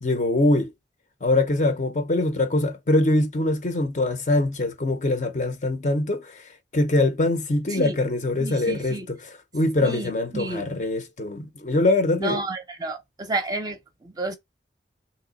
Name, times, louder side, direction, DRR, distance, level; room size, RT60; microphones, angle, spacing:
voice 1, 0.0-0.7 1.2-6.4 6.7-9.0 9.5-12.4, left 2 dB, 40° left, 0.6 m, -23 dB
voice 2, 8.4-9.1 9.8-10.6 12.2-14.4, right 2 dB, 20° right, 0.6 m, -31 dB
3.0 x 2.9 x 4.0 m
head